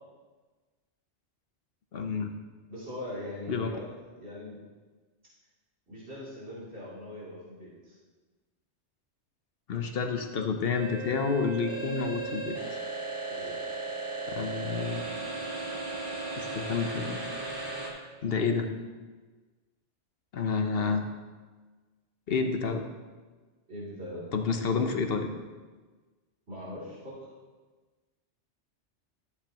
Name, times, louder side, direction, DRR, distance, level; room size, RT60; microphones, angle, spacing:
voice 1, 1.9-2.4 3.5-3.7 9.7-12.6 14.3-15.2 16.4-17.2 18.2-18.7 20.3-21.1 22.3-22.8 24.3-25.3, left 5 dB, 60° left, 6 dB, 1.0 m, -29 dB
voice 2, 2.7-3.9 4.2-4.6 5.9-8.0 13.3-13.5 23.7-24.3 26.5-27.2, left 1 dB, 65° right, -9 dB, 3.2 m, -41 dB
sound 1, 10.7-17.9, right 3 dB, 50° right, 1.9 m, -36 dB
13.5 x 8.4 x 2.9 m, 1.3 s
omnidirectional pair, 1.2 m